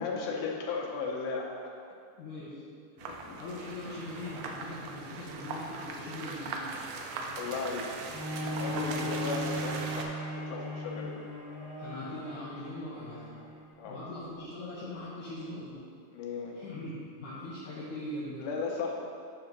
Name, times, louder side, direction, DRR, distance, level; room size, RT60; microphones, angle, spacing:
voice 1, 0.0-1.6 3.0-3.4 4.3-4.4 4.7-4.9 5.1-5.3 7.4-7.9 8.6-11.2 13.8-14.0 16.1-16.6 18.4-18.9, left 4 dB, 90° left, -1 dB, 2.7 m, -36 dB
voice 2, 2.2-2.6 3.0-3.1 3.4-6.7 8.6-9.1 10.9-11.0 11.8-13.3 13.8-15.8 16.5-18.5, left 1 dB, 70° left, -10 dB, 2.5 m, -41 dB
sound 1, 3.0-10.0, right 4 dB, 80° right, 1.7 m, -40 dB
Bowed string instrument, 8.1-13.7 14.4-14.5, equal, 45° left, 1.2 m, -38 dB
8.4 x 3.7 x 5.9 m, 2.3 s
omnidirectional pair, 4.1 m